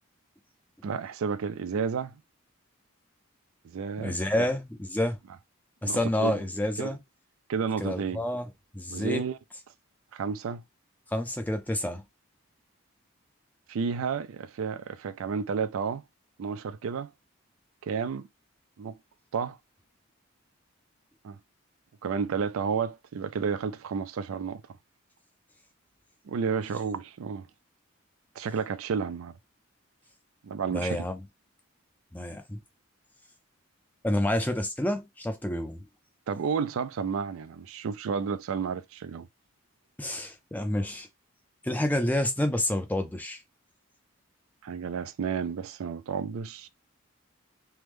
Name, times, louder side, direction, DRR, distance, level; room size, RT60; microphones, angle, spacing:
voice 1, 0.8-2.2 3.6-4.5 5.8-6.4 6.8-6.9 7.5-8.2 8.9-9.4 10.1-10.6 13.7-16.0 16.4-17.1 17.8-18.3 18.8-19.0 19.3-19.6 21.2-21.4 22.0-24.6 26.3-27.5 28.4-29.3 30.4-31.0 36.3-39.3 44.6-46.7, right 6 dB, 75° right, 0.4 m, -31 dB
voice 2, 4.0-5.2 5.8-7.0 7.8-8.5 8.7-9.2 11.1-12.0 30.7-31.2 32.1-32.6 34.0-35.8 40.0-41.1 41.6-43.4, left 1 dB, 10° left, 0.4 m, -29 dB
3.4 x 2.1 x 3.0 m
head